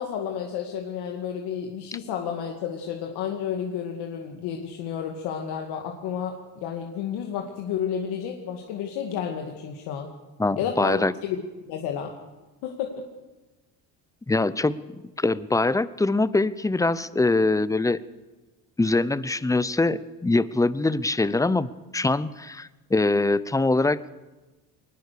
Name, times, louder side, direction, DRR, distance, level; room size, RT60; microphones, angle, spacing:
voice 1, 0.0-6.3 6.6-10.1 10.6-11.4 11.7-12.1 12.6-13.1, left 8 dB, 80° left, 2 dB, 2.3 m, -31 dB
voice 2, 10.4-11.1 14.3-14.8 15.2-18.0 18.8-24.1, left 2 dB, 10° left, 17 dB, 0.7 m, -23 dB
21.5 x 20.0 x 6.8 m, 1.2 s
cardioid pair, 105°, 38 cm